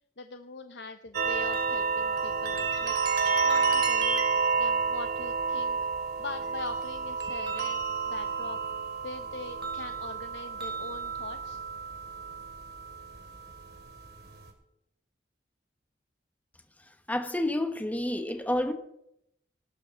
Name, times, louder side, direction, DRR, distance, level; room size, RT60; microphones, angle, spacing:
voice 1, 0.2-3.0 3.2-4.2 4.6-5.8 6.2-8.6 9.0-11.6, left 3 dB, 75° left, 0.8 m, -42 dB
sound 1, 1.1-14.5, right 5 dB, 65° right, 2.5 m, -30 dB
voice 2, 17.1-18.7, left 1 dB, 10° left, 1.2 m, -29 dB
19.0 x 12.5 x 3.8 m
head